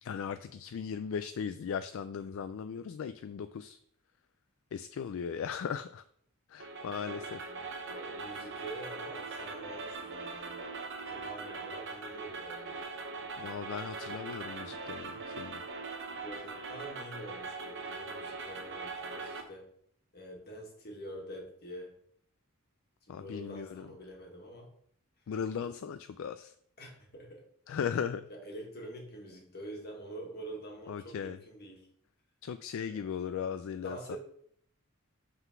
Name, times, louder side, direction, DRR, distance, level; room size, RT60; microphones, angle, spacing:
voice 1, 0.0-3.8 4.7-6.0 6.5-7.5 13.4-15.6 23.1-23.9 25.3-26.5 27.7-28.3 30.9-31.4 32.4-34.2, left 7 dB, 65° left, 11 dB, 0.3 m, -37 dB
sound 1, 6.6-19.4, right 4 dB, 60° right, 0.9 m, -41 dB
voice 2, 7.4-10.7 11.0-12.8 16.2-19.7 20.1-22.0 23.1-24.7 26.8-27.4 28.3-31.8 32.8-33.1 33.8-34.2, right 1 dB, 50° left, 0 dB, 1.7 m, -46 dB
5.6 x 3.9 x 5.9 m, 0.65 s
head